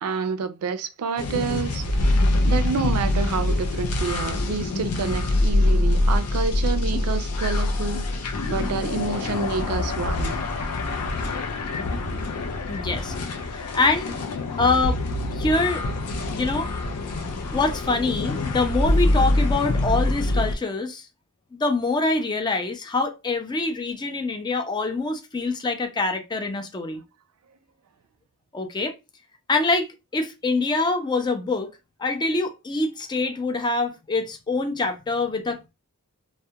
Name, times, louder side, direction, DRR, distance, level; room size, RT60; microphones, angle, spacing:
voice 1, 0.0-1.8 2.4-8.0 8.5-10.4, right 5 dB, 75° right, 0.4 m, -28 dB
sound 1, 1.2-20.5, left 2 dB, 90° left, 0.5 m, -24 dB
voice 2, 12.7-13.1 13.4-14.1 14.6-15.0 15.3-15.8 16.3-16.7 17.5-21.0 21.5-27.0 28.5-28.9 29.5-31.7 32.0-35.7, left 3 dB, 20° left, 0.4 m, -25 dB
2.3 x 2.1 x 2.7 m
head